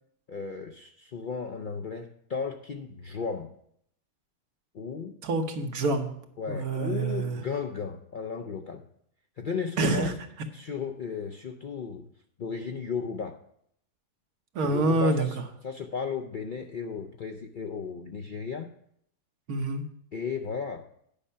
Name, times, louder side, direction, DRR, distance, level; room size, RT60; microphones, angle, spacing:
voice 1, 0.3-3.5 4.7-5.1 6.4-8.8 9.4-10.1 10.5-12.1 12.4-13.4 14.6-15.4 15.6-18.7 20.1-20.8, left 5 dB, 60° left, 5 dB, 0.5 m, -34 dB
voice 2, 5.2-6.1 6.5-7.4 9.8-10.1 14.5-15.3 19.5-19.8, right 2 dB, 80° right, 5 dB, 1.5 m, -26 dB
10.0 x 5.5 x 5.5 m, 0.69 s
omnidirectional pair, 1.5 m